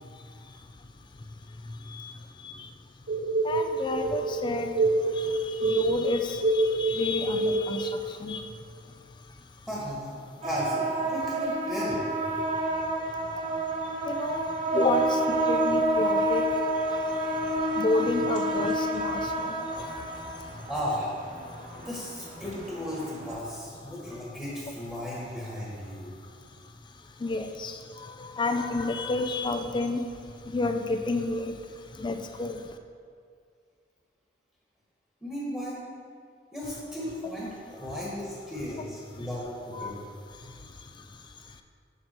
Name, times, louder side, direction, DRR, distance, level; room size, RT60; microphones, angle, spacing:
voice 1, 0.0-3.1 3.4-9.7 12.5-20.7 21.4-21.9 23.8-24.0 25.9-32.8 39.2-39.3 39.7-39.9 40.3-41.6, left 2 dB, 25° left, 6 dB, 0.4 m, -33 dB
sound 1, 3.1-7.9, right 2 dB, 65° right, 0.6 m, -26 dB
voice 2, 9.7-12.1 20.7-21.1 21.7-26.1 35.2-35.8 36.5-40.0, equal, 5° left, -7 dB, 1.4 m, -35 dB
sound 2, 10.4-23.4, right 1 dB, 40° right, 1.0 m, -29 dB
7.5 x 6.0 x 4.5 m, 2.2 s
head